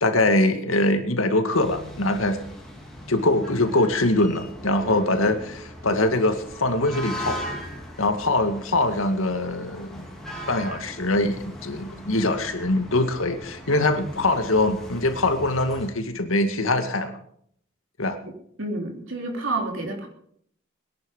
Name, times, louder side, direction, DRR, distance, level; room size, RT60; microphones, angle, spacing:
voice 1, 0.0-2.4 3.1-7.4 8.0-10.1 10.5-17.2 18.0-18.2, left 2 dB, 80° left, 7 dB, 2.0 m, -23 dB
sound 1, 1.5-15.9, equal, 5° left, 3.4 m, -39 dB
voice 2, 18.6-20.1, right 2 dB, 65° right, 2 dB, 3.6 m, -29 dB
21.5 x 11.0 x 5.6 m, 0.67 s
head